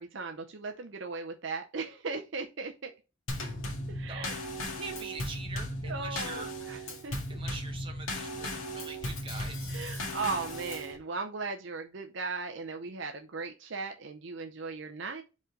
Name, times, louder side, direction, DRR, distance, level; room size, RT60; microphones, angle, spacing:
voice 1, 0.0-2.9 3.9-4.4 5.8-7.4 9.7-15.2, right 4 dB, 60° right, 0.6 m, -37 dB
Drum kit / Snare drum / Bass drum, 3.3-11.0, equal, 80° left, 1.8 m, -36 dB
voice 2, 4.0-6.5 7.3-9.7, right 4 dB, 25° right, 1.3 m, -44 dB
5.3 x 3.8 x 4.6 m
head